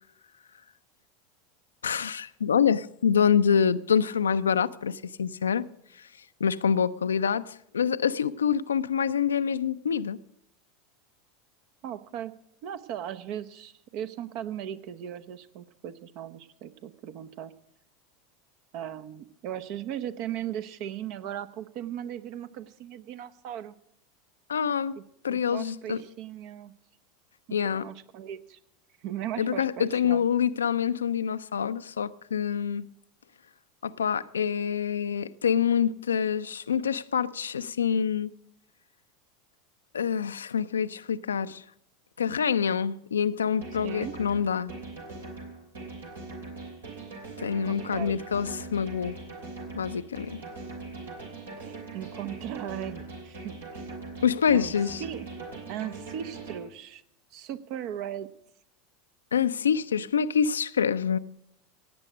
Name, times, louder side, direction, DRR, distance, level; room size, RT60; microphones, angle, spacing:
voice 1, 1.8-5.7 5.9-6.1 6.4-10.2 24.5-25.0 25.2-26.0 27.5-27.9 29.4-32.9 33.8-38.3 39.9-41.6 42.2-44.7 47.4-49.2 49.8-50.4 54.2-55.0 59.3-61.2, left 7 dB, 75° left, 0.5 m, -26 dB
voice 2, 11.8-12.3 12.6-17.5 18.7-23.7 25.0-25.1 25.3-26.7 27.5-28.6 29.0-30.2 43.8-44.2 47.6-48.2 51.6-53.9 54.5-54.7 55.0-55.3 55.7-57.0 57.3-58.3, right 10 dB, 50° right, 0.9 m, -37 dB
sound 1, 43.6-56.6, right 3 dB, 75° right, 3.1 m, -41 dB
17.0 x 9.1 x 6.2 m
figure-of-eight pair, 80°, 0 cm